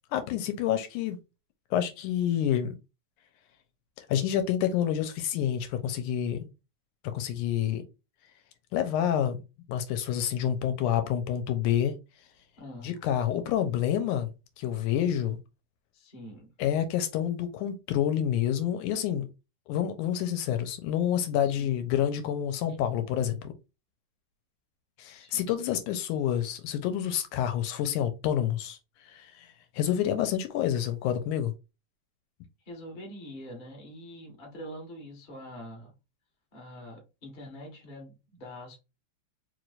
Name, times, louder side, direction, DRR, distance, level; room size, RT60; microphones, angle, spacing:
voice 1, 0.1-1.2 1.7-2.8 4.0-6.5 7.1-7.8 8.7-9.4 9.7-12.0 12.8-14.3 14.6-15.4 16.6-19.3 19.7-23.5 25.0-28.8 29.1-31.5, left 10 dB, 80° left, 2.0 m, -28 dB
voice 2, 12.6-13.0 15.9-16.5 21.4-21.8 25.2-25.5 32.6-35.9 36.5-38.8, equal, 30° left, 0.9 m, -44 dB
4.6 x 3.2 x 2.5 m
omnidirectional pair, 3.7 m